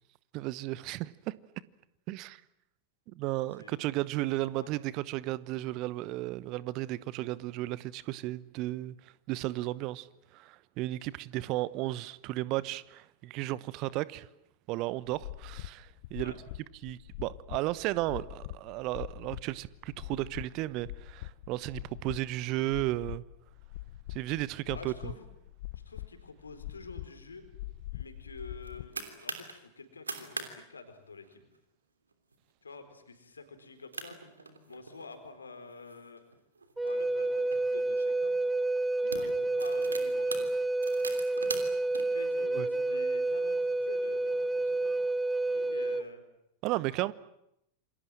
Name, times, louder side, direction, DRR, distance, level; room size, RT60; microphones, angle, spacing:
voice 1, 0.3-1.4 2.1-2.4 3.1-9.0 9.3-10.1 10.3-14.3 14.7-16.3 16.8-23.2 24.1-25.1 42.5-42.7 46.6-47.1, right 17 dB, 40° right, 1.0 m, -34 dB
voice 2, 4.3-4.7 16.2-16.4 24.7-25.3 25.9-27.4 27.9-31.4 32.6-36.2 36.8-38.4 39.0-40.6 42.1-45.1 45.4-46.2, left 4 dB, 75° left, 4.3 m, -48 dB
sound 1, 15.1-28.9, left 16 dB, 50° left, 1.2 m, -43 dB
sound 2, 28.4-29.5 29.9-30.5 30.8-30.9 31.2-31.6 32.1-32.3 32.8-32.9 33.6-33.7 33.9-35.1 35.7-37.6 38.3-38.5 38.9-42.0, right 3 dB, 75° right, 3.1 m, -41 dB
Wind instrument woodwind instrument, 36.8-46.1, right 2 dB, 5° right, 0.9 m, -29 dB
28.0 x 25.5 x 7.7 m
figure-of-eight pair, 90°, 0 cm